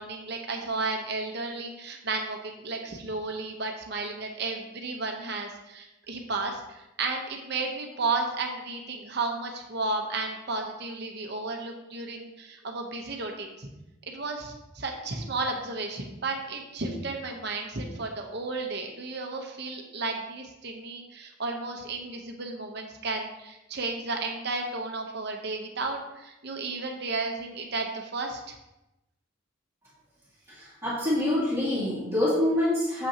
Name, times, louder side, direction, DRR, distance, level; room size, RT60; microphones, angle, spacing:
voice 1, 0.0-13.7 14.1-28.5, right 3 dB, 55° right, 2 dB, 1.0 m, -33 dB
voice 2, 30.5-33.1, left 1 dB, 15° right, -10 dB, 2.5 m, -26 dB
7.0 x 5.8 x 2.9 m, 0.94 s
head